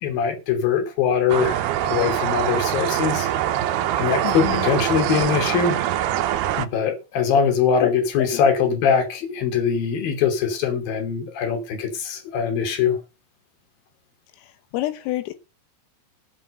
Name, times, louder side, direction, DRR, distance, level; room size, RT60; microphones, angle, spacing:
voice 1, 0.0-3.3 4.0-5.8 6.6-13.0, left 7 dB, 50° left, 4.1 m, -22 dB
sound 1, 1.3-6.7, right 12 dB, 90° right, 2.3 m, -23 dB
voice 2, 4.2-4.7 7.3-7.4 7.8-7.9 8.2-8.3 14.7-15.4, left 15 dB, 85° left, 3.7 m, -27 dB
15.5 x 7.7 x 5.6 m
omnidirectional pair, 5.9 m